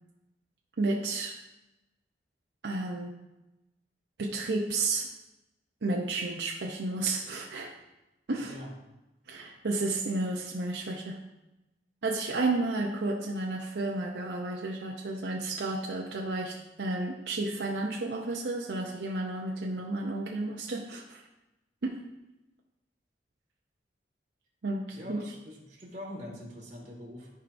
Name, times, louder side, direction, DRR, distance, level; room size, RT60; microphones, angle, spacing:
voice 1, 0.8-1.3 2.6-3.1 4.2-5.1 5.8-7.7 8.3-8.5 9.3-11.2 12.0-21.2 21.8-22.0 24.6-25.2, right 2 dB, 80° right, 0 dB, 0.7 m, -32 dB
voice 2, 24.9-27.3, left 1 dB, 40° right, -2 dB, 1.9 m, -43 dB
13.5 x 4.7 x 2.6 m, 0.98 s
head